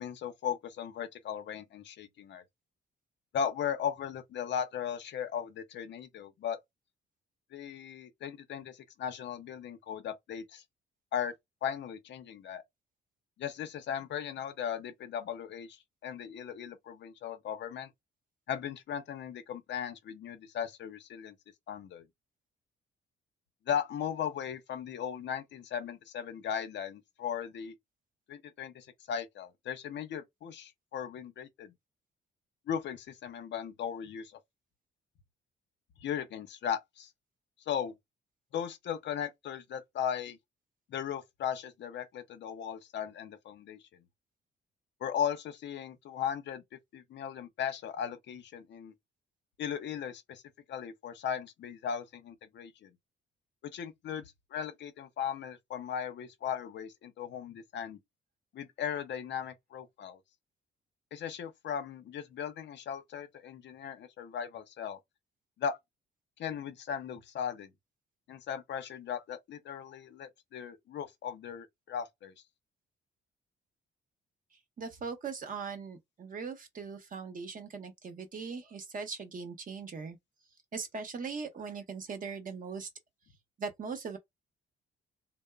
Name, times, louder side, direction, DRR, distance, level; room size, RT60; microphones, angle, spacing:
voice 1, 0.0-2.4 3.3-6.6 7.5-10.6 11.1-11.3 11.6-12.6 13.4-17.9 18.5-21.4 21.7-22.0 23.7-27.7 28.3-31.7 32.7-34.3 36.0-37.1 37.7-37.9 38.5-40.4 40.9-43.8 45.0-46.6 46.9-48.9 49.6-50.4 50.7-52.9 53.7-54.2 54.5-58.0 58.5-60.2 61.1-65.0 65.6-65.8 66.4-67.7 68.3-72.3, left 8 dB, 65° left, 0.6 m, -37 dB
voice 2, 74.8-80.2 80.7-82.9 83.6-84.2, right 5 dB, 45° right, 0.8 m, -40 dB
2.8 x 2.0 x 2.2 m
cardioid pair, 90°, 20 cm